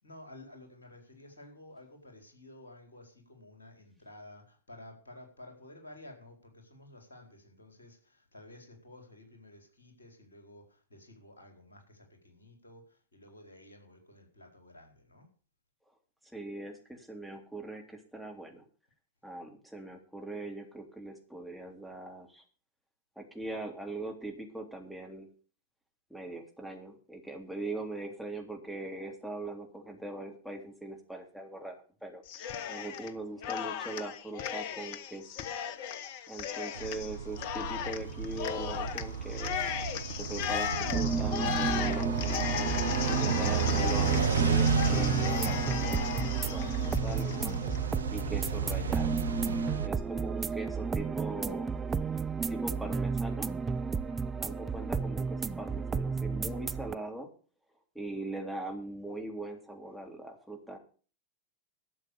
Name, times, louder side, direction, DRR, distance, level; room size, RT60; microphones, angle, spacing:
voice 1, 0.0-15.3 53.9-54.3, left 1 dB, 75° left, 3 dB, 4.4 m, -53 dB
voice 2, 16.3-18.6 19.2-22.4 23.1-25.3 26.1-31.8 32.0-35.2 36.3-39.6 40.2-42.2 43.1-47.6 48.1-49.2 49.8-51.7 52.5-53.5 54.4-57.3 57.9-60.8, right 2 dB, ahead, 2 dB, 3.3 m, -41 dB
Cheering, 32.3-33.1 33.4-47.8, left 9 dB, 50° left, 1.1 m, -36 dB
sound 1, 36.8-49.9, right 6 dB, 70° right, 0.7 m, -32 dB
sound 2, 40.8-56.9, right 5 dB, 15° right, 0.7 m, -33 dB
12.5 x 7.5 x 7.0 m, 0.40 s
figure-of-eight pair, 90°, 0 cm